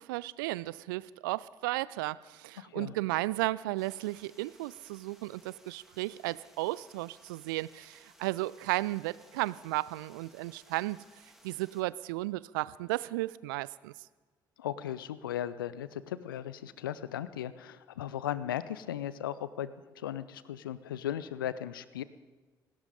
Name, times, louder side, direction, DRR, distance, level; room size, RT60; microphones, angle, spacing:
voice 1, 0.0-11.0 11.4-13.9, right 19 dB, 70° right, 20 dB, 0.4 m, -34 dB
voice 2, 2.6-3.0 14.6-22.0, left 11 dB, 80° left, 16 dB, 0.5 m, -37 dB
sound 1, 3.8-11.8, equal, 5° right, 2.1 m, -61 dB
18.5 x 16.0 x 3.8 m, 1.3 s
figure-of-eight pair, 45°, 11 cm